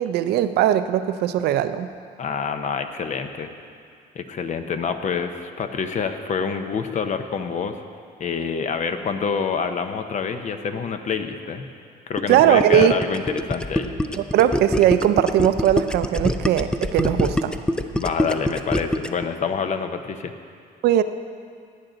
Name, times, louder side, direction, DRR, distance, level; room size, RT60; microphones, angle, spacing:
voice 1, 0.0-1.9 12.3-12.9 14.2-17.6 20.8-21.0, right 11 dB, 75° right, 11 dB, 0.5 m, -19 dB
voice 2, 2.2-3.5 4.1-7.8 8.2-11.7 12.1-13.9 17.9-20.3, left 6 dB, 45° left, 8 dB, 0.8 m, -27 dB
Gurgling, 12.2-19.3, left 1 dB, 5° left, 0.4 m, -24 dB
16.5 x 9.0 x 4.0 m, 2.3 s
cardioid pair, 110°, 17 cm